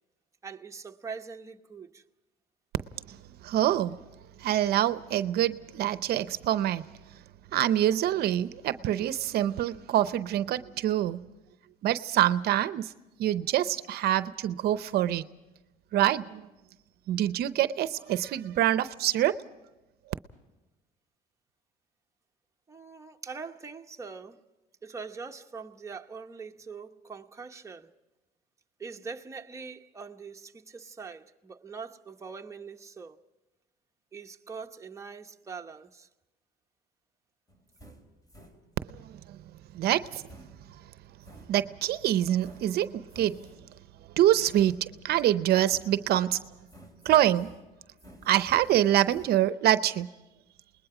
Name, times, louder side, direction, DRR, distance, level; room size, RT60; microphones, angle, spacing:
voice 1, 0.4-2.0 22.7-24.4 24.8-27.9 28.8-33.2 34.1-36.1, right 5 dB, 15° right, 1.0 m, -43 dB
voice 2, 3.4-4.0 4.4-6.8 7.5-11.2 11.8-12.9 13.2-15.2 15.9-16.5 17.1-19.3 38.9-39.4 39.7-40.2 41.5-43.5 44.2-46.4 47.0-47.5 48.3-50.1, right 12 dB, 70° right, 0.7 m, -25 dB
sound 1, 37.5-39.0 40.0-42.0 42.4-43.8 44.5-45.3 45.6-46.3 46.7-49.3, right 1 dB, 20° left, 3.3 m, -53 dB
28.5 x 20.5 x 4.9 m
cardioid pair, 110°, 17 cm